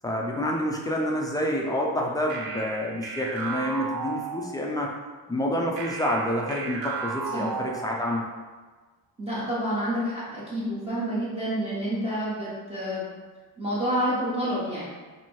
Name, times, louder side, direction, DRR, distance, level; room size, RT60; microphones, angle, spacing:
voice 1, 0.0-4.9 5.3-8.2, equal, 10° left, -2 dB, 0.3 m, -28 dB
sound 1, 2.3-4.8 5.8-8.3, right 4 dB, 70° right, 0.8 m, -34 dB
voice 2, 9.2-13.1 13.6-14.9, equal, 15° right, -9 dB, 0.8 m, -28 dB
2.9 x 2.7 x 4.3 m, 1.4 s
cardioid pair, 155°, 36 cm